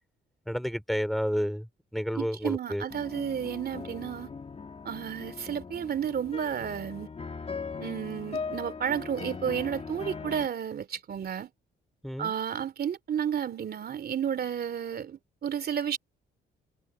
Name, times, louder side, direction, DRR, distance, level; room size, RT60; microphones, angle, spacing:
voice 1, 0.5-1.7 1.9-2.9 12.0-12.3, equal, ahead, 4.7 m, -30 dB
voice 2, 2.1-4.3 4.8-7.1 7.8-11.5 12.2-16.0, right 8 dB, 50° right, 2.7 m, -32 dB
sound 1, 2.9-10.5, left 5 dB, 30° left, 2.0 m, -40 dB
cardioid pair, 90°, 20 cm